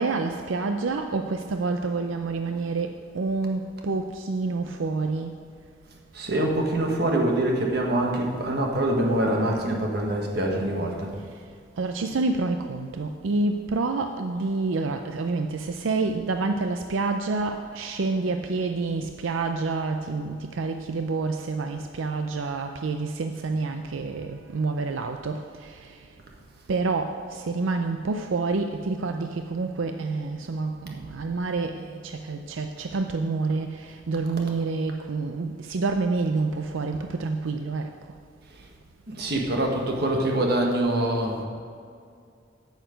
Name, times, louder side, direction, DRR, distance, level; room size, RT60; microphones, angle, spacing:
voice 1, 0.0-5.4 11.8-26.0 26.7-37.9, right 3 dB, 90° right, 6 dB, 0.5 m, -28 dB
voice 2, 6.1-11.1 39.1-41.4, right 1 dB, 55° right, 0 dB, 1.5 m, -24 dB
8.9 x 8.2 x 5.1 m, 2.3 s
head